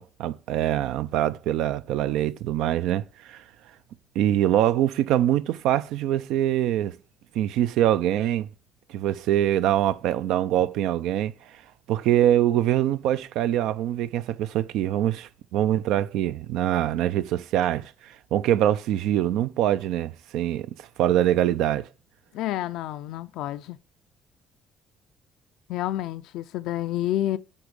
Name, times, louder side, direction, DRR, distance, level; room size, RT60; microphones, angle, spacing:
voice 1, 0.0-3.4 4.2-7.0 7.3-8.5 8.9-11.3 11.9-21.9, right 12 dB, 90° right, 0.4 m, -24 dB
voice 2, 22.3-23.8 25.7-27.4, left 13 dB, 90° left, 0.4 m, -29 dB
9.9 x 3.6 x 6.3 m
cardioid pair, 115°, 0 cm